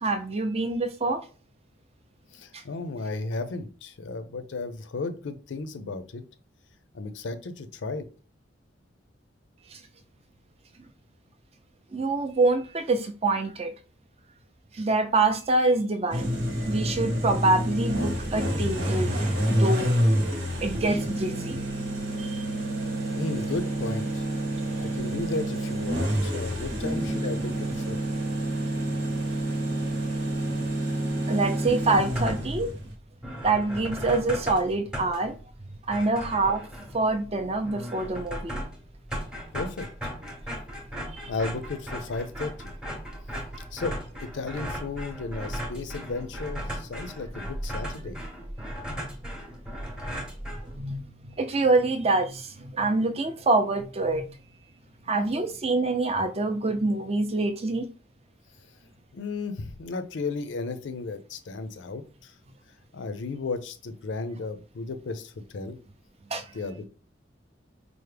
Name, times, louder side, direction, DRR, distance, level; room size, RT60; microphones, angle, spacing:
voice 1, 0.0-1.2 2.5-2.6 9.7-9.8 11.9-13.7 14.7-16.3 16.6-19.9 20.6-21.6 22.2-22.4 31.3-32.7 33.4-35.4 35.9-36.7 36.9-38.6 41.1-41.2 49.0-49.2 50.7-54.4 55.1-57.9 66.3-66.4, right 3 dB, 35° right, 0.4 m, -26 dB
voice 2, 2.3-6.2 6.9-8.1 23.2-24.3 24.8-28.0 39.5-39.9 41.2-42.8 43.7-48.2 55.1-55.2 59.1-62.3 62.9-65.8 66.5-66.9, left 3 dB, 70° left, 0.5 m, -34 dB
sound 1, 16.1-32.9, right 1 dB, 75° right, 1.0 m, -28 dB
sound 2, 32.1-32.6 33.0-33.1 33.2-51.1, equal, 5° right, 0.8 m, -37 dB
4.5 x 2.0 x 3.3 m
head